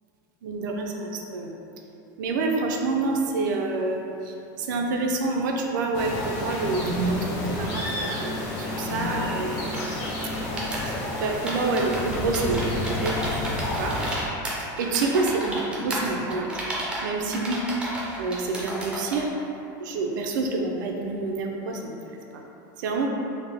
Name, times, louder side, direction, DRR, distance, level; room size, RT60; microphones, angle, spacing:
voice 1, 0.4-1.6 2.2-10.0 10.5-10.6 11.2-14.0 14.8-16.6 17.0-17.7 18.2-19.3 19.8-22.0 22.3-22.4 22.8-23.1, right 3 dB, 75° right, 1 dB, 0.4 m, -27 dB
sound 1, 5.9-14.2, left 1 dB, 35° left, 0.7 m, -30 dB
sound 2, 9.6-19.3, right 1 dB, 10° right, 0.3 m, -33 dB
3.5 x 2.0 x 3.3 m, 2.9 s
supercardioid pair, 170°, 11 cm